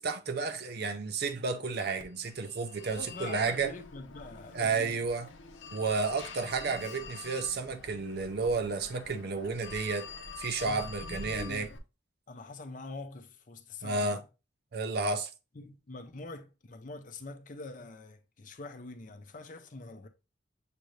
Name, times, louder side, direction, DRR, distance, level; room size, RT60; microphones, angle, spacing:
voice 1, 0.0-3.7 4.5-5.3 5.7-10.1 10.4-11.7 13.8-14.2 14.7-15.3, right 4 dB, 55° right, 0.5 m, -32 dB
Telephone, 2.0-11.8, left 4 dB, 80° left, 0.7 m, -46 dB
voice 2, 2.9-5.1 10.6-11.7 12.3-14.2 15.5-20.1, left 3 dB, 45° left, 0.6 m, -44 dB
6.6 x 2.6 x 3.1 m
head